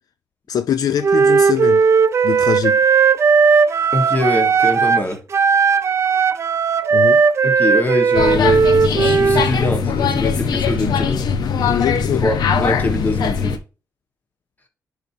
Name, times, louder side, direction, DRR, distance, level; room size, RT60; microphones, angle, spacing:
voice 1, 0.5-1.8 2.2-2.8 6.9-7.2 11.6-12.3, left 9 dB, 65° left, 0.4 m, -22 dB
Wind instrument woodwind instrument, 1.0-5.1 5.3-9.5, right 5 dB, 40° right, 0.5 m, -16 dB
voice 2, 3.9-5.2 7.4-11.3 12.1-13.6, left 2 dB, 25° left, 1.5 m, -23 dB
sound 1, 8.1-13.6, left 6 dB, 85° left, 0.8 m, -20 dB
10.0 x 4.3 x 2.7 m
wide cardioid pair, 145°, 7 cm